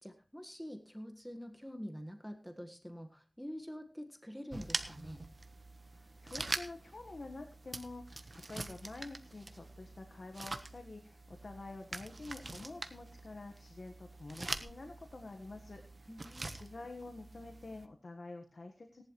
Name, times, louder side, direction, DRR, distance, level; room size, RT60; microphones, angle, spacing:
voice 1, 0.0-5.2 16.1-16.5, equal, ahead, 4 dB, 1.6 m, -46 dB
sound 1, 4.5-17.8, right 2 dB, 55° right, 1.2 m, -45 dB
voice 2, 5.9-16.1 16.5-19.0, left 2 dB, 70° left, 4 dB, 1.5 m, -48 dB
18.0 x 11.5 x 3.2 m, 0.34 s
wide cardioid pair, 65°, 0 cm